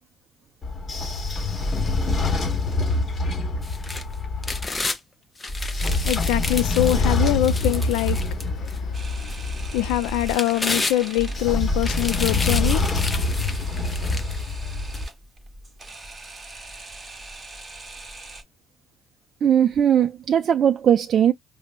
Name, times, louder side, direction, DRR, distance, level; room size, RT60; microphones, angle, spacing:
Train / Sliding door, 0.6-4.7 5.5-10.3 11.2-15.1, left 2 dB, 35° left, 1.3 m, -25 dB
sound 1, 3.6-5.0 5.4-8.8 9.3-9.4 10.0-11.4 11.8-14.4 14.9-15.0, left 3 dB, 20° left, 0.6 m, -31 dB
voice 1, 6.0-13.9, left 14 dB, 85° left, 0.3 m, -25 dB
Camera, 8.9-18.4, right 2 dB, 20° right, 1.0 m, -42 dB
voice 2, 19.4-21.3, right 9 dB, 50° right, 0.4 m, -19 dB
5.1 x 2.0 x 2.5 m
supercardioid pair, 90°, 0 cm